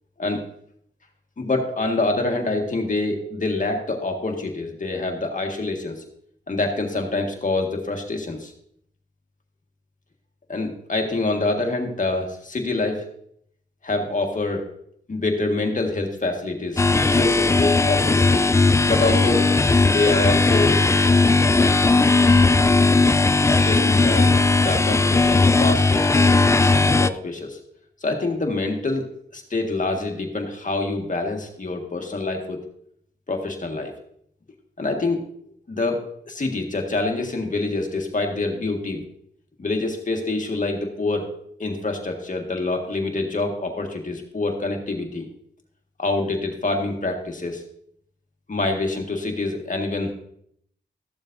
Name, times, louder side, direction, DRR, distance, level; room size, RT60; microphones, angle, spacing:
voice 1, 1.4-6.0 6.5-8.5 10.5-13.0 13.8-14.6 15.1-18.5 18.9-20.8 23.5-27.6 28.0-29.1 29.3-32.6 33.3-33.9 34.8-35.2 35.7-39.0 39.6-41.3 41.6-45.3 46.0-47.6 48.5-50.1, left 2 dB, 40° left, 3 dB, 1.7 m, -26 dB
sound 1, 16.8-27.1, left 3 dB, 15° left, 0.3 m, -17 dB
13.5 x 7.1 x 2.7 m, 0.69 s
cardioid pair, 65°, 19 cm